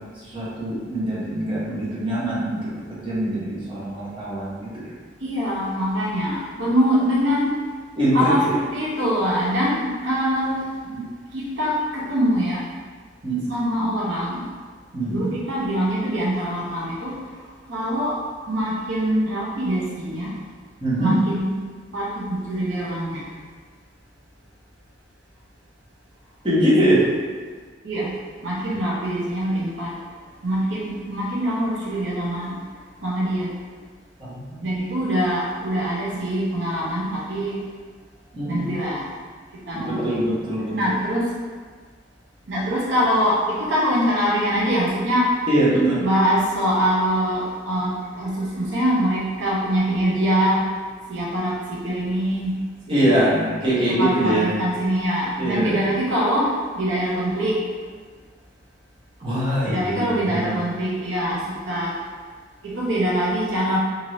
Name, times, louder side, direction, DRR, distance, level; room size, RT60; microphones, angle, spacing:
voice 1, 0.2-4.9 8.0-8.5 10.9-11.0 13.2-13.5 14.9-15.3 20.8-21.2 26.4-27.0 34.2-34.6 38.3-38.6 39.7-40.9 45.5-46.0 52.9-54.5 55.3-55.8 59.2-60.6, right 1 dB, 25° right, -10 dB, 0.9 m, -23 dB
voice 2, 5.2-7.5 8.1-10.6 11.3-12.6 13.5-14.5 15.1-17.1 17.7-18.1 18.5-20.3 21.0-21.6 21.9-23.2 26.7-27.1 27.8-28.1 28.4-29.9 30.4-32.6 33.0-33.5 34.6-37.6 38.5-39.1 39.7-40.3 40.7-41.3 42.5-45.3 46.0-50.7 51.1-52.6 52.9-53.3 54.0-57.6 59.6-61.9 62.6-63.8, equal, 85° right, -6 dB, 0.7 m, -23 dB
2.6 x 2.6 x 3.1 m, 1.5 s
head